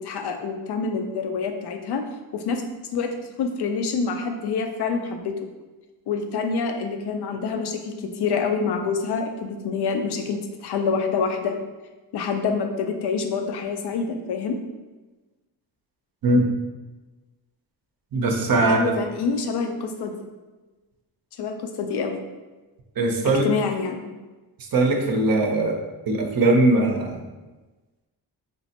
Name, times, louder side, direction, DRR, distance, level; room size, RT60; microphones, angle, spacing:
voice 1, 0.0-2.0 2.3-2.6 2.9-3.1 3.4-5.3 6.1-11.6 12.1-14.6 18.5-20.1 21.4-22.2 23.4-24.1, left 5 dB, 60° left, 5 dB, 0.5 m, -26 dB
voice 2, 18.1-18.8 23.0-23.4 24.7-25.8 26.1-27.2, right 2 dB, 50° right, 2 dB, 0.6 m, -20 dB
3.2 x 2.0 x 2.8 m, 1.2 s
supercardioid pair, 50°, 47 cm